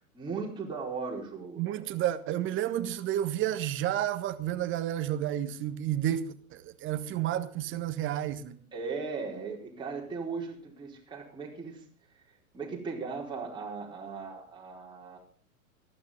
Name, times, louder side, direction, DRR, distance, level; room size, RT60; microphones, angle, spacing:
voice 1, 0.1-1.9 8.7-11.8 12.5-15.2, right 4 dB, 10° right, 4.7 m, -37 dB
voice 2, 1.6-8.6, right 12 dB, 30° right, 1.4 m, -31 dB
20.0 x 14.5 x 3.9 m
figure-of-eight pair, 100°, 43 cm